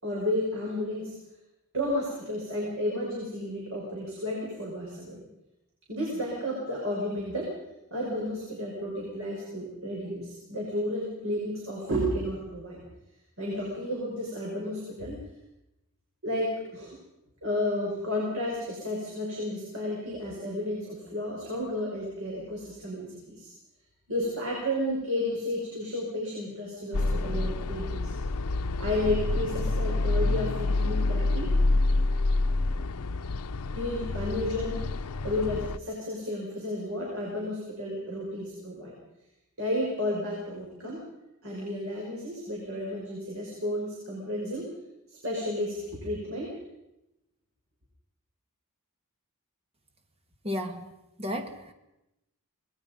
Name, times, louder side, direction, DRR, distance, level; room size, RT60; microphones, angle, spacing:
voice 1, 0.0-1.1 1.7-5.2 5.9-7.5 7.9-12.8 13.4-15.2 16.2-17.0 17.4-23.5 24.1-28.1 28.8-31.5 33.7-34.9 35.2-38.9 39.6-41.0 41.4-44.7 45.1-46.5, left 1 dB, 65° right, -3 dB, 6.1 m, -32 dB
sound 1, 26.9-35.8, left 2 dB, 85° left, 0.7 m, -27 dB
voice 2, 50.4-50.9 51.2-51.7, equal, 25° right, 6 dB, 2.0 m, -33 dB
25.0 x 20.5 x 5.4 m, 0.92 s
head